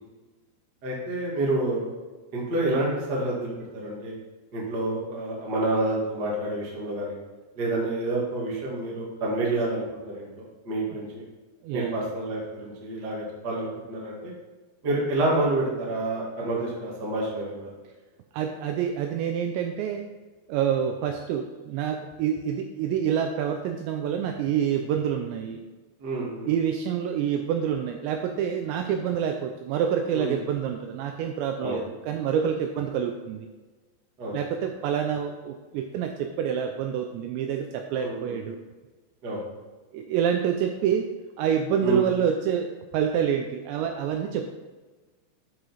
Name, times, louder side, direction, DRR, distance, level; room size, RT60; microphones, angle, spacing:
voice 1, 0.8-1.8 2.3-4.1 4.5-7.2 7.5-10.3 10.6-11.2 11.7-14.3 14.8-17.7 26.0-26.5 30.1-30.3 31.6-31.8 34.2-34.3 38.0-38.4 39.2-39.4 41.8-42.0, right 2 dB, 55° right, -4 dB, 1.1 m, -28 dB
voice 2, 11.6-12.0 18.3-20.1 20.5-25.7 26.5-33.5 34.3-38.6 39.9-41.1 41.4-44.5, right 8 dB, 85° right, 5 dB, 2.6 m, -27 dB
11.5 x 5.0 x 4.2 m, 1.3 s
omnidirectional pair, 5.6 m